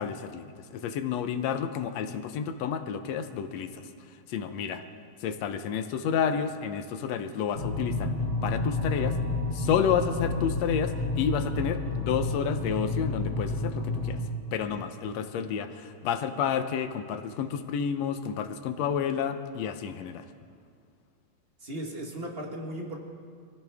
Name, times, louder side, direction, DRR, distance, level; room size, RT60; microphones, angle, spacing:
voice 1, 0.0-4.8 5.2-8.1 8.4-9.2 9.5-14.2 14.5-20.3, left 7 dB, 70° left, 9 dB, 1.9 m, -30 dB
sound 1, 7.5-14.2, left 2 dB, 20° left, 3.4 m, -30 dB
voice 2, 21.6-23.0, right 1 dB, 35° right, 1 dB, 1.0 m, -36 dB
26.5 x 15.5 x 3.5 m, 2.2 s
omnidirectional pair, 3.3 m